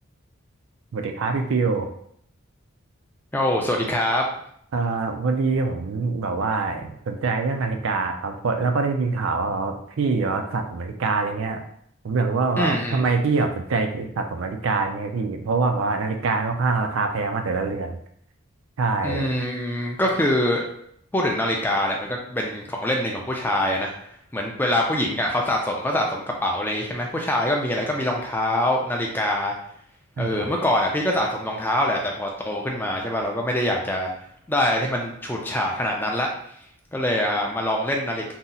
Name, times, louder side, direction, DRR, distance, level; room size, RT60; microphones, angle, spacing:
voice 1, 0.9-1.9 4.7-11.6 12.0-18.0 18.8-19.3 30.2-30.5, right 4 dB, 65° right, 5 dB, 0.4 m, -24 dB
voice 2, 3.3-4.2 12.6-13.0 19.0-20.6 21.1-23.9 24.3-29.5 30.2-34.1 34.5-36.3 36.9-38.3, left 1 dB, 10° left, 0 dB, 0.3 m, -24 dB
2.7 x 2.0 x 3.8 m, 0.68 s
head